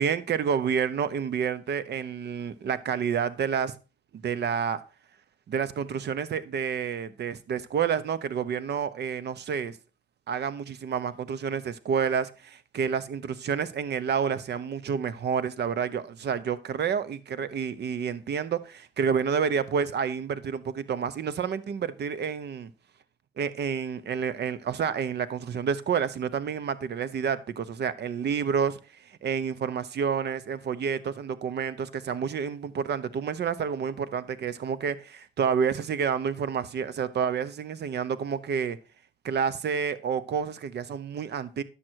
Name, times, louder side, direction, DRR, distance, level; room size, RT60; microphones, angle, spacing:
voice 1, 0.0-3.7 4.1-4.8 5.5-9.8 10.3-22.7 23.4-38.8 39.2-41.6, right 7 dB, 55° right, 0.9 m, -29 dB
10.5 x 7.6 x 4.6 m
cardioid pair, 90°, 20 cm